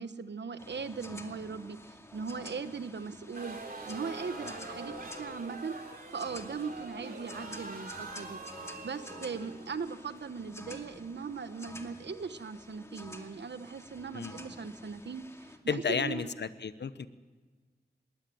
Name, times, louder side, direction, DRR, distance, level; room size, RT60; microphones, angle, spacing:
voice 1, 0.0-3.6 3.9-5.7 6.1-8.4 8.8-16.3, right 5 dB, 75° right, 11 dB, 1.2 m, -39 dB
sound 1, 0.6-15.6, left 1 dB, 15° left, 2.3 m, -50 dB
sound 2, 3.3-10.5, right 3 dB, 55° right, 3.2 m, -44 dB
voice 2, 15.7-17.1, left 6 dB, 75° left, 14 dB, 0.9 m, -33 dB
21.0 x 17.5 x 7.8 m, 1.4 s
wide cardioid pair, 60°, 18 cm